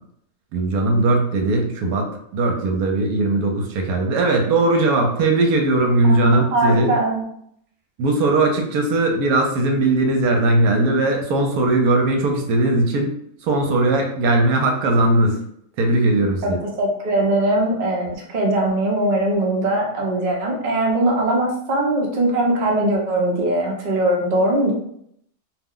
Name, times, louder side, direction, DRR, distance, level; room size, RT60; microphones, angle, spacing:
voice 1, 0.5-2.1 2.3-7.0 8.0-13.1 13.4-15.4 15.8-16.6, right 2 dB, 80° right, 3 dB, 1.1 m, -19 dB
voice 2, 6.1-7.2 16.4-16.5 16.8-24.7, right 1 dB, 50° right, -1 dB, 0.5 m, -21 dB
2.6 x 2.1 x 3.6 m, 0.71 s
omnidirectional pair, 1.6 m